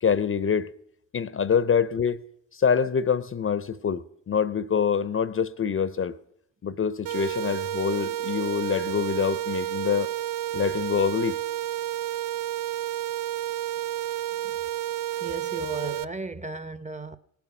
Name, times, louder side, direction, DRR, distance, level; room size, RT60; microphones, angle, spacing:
voice 1, 0.0-0.7 1.1-2.2 2.5-6.1 6.6-10.1 10.5-11.4, left 7 dB, 35° left, 0.7 m, -25 dB
sound 1, 7.1-16.1, right 13 dB, 80° right, 0.6 m, -30 dB
voice 2, 15.2-17.2, right 3 dB, 20° right, 0.9 m, -35 dB
18.5 x 7.0 x 6.0 m
hypercardioid pair, 50°, 39 cm